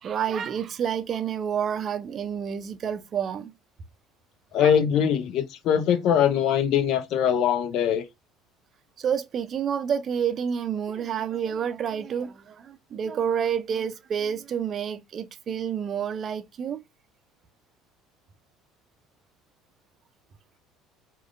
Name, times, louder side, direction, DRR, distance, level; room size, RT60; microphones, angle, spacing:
voice 1, 0.0-3.5 4.6-4.7 9.0-16.8, right 8 dB, 40° right, 0.5 m, -29 dB
voice 2, 4.5-8.0, left 8 dB, 50° left, 0.6 m, -22 dB
4.8 x 2.3 x 2.4 m
figure-of-eight pair, 60°, 0 cm